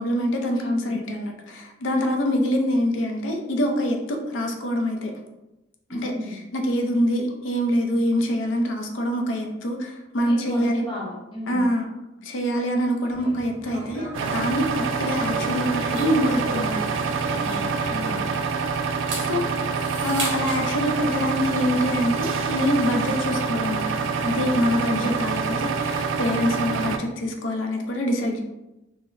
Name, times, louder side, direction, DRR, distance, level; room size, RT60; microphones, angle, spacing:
voice 1, 0.0-5.1 5.9-6.1 6.5-10.9 11.5-11.9 12.2-16.8 19.3-19.5 20.0-28.4, equal, 80° left, 2 dB, 0.5 m, -25 dB
voice 2, 0.5-1.0 5.9-6.4 10.2-11.7 17.3-18.2 24.7-25.1, left 1 dB, 25° left, -3 dB, 0.7 m, -34 dB
sound 1, 13.0-17.9, equal, 25° right, 0.8 m, -42 dB
sound 2, 14.1-27.0, right 5 dB, 80° right, 0.3 m, -26 dB
sound 3, 15.2-18.5 18.9-20.6, right 2 dB, 65° right, 0.7 m, -34 dB
3.8 x 2.0 x 2.5 m, 0.96 s
head